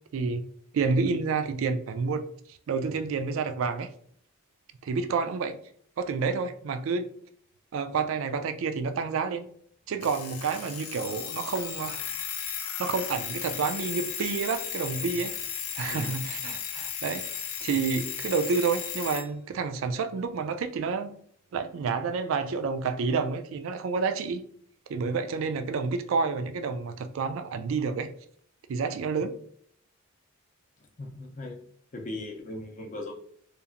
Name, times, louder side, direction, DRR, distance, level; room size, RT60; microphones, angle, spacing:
voice 1, 0.1-0.5 0.7-2.3 2.7-3.9 4.8-5.6 6.0-7.1 7.7-9.5 9.9-12.0 12.8-15.4 15.8-21.1 21.5-24.4 24.9-28.1 28.7-29.3, right 5 dB, 65° right, 0.3 m, -29 dB
Alarm, 10.0-19.3, left 8 dB, 90° left, 0.4 m, -35 dB
voice 2, 30.8-31.6 31.9-33.1, left 2 dB, 35° left, 0.5 m, -38 dB
2.8 x 2.4 x 2.4 m
head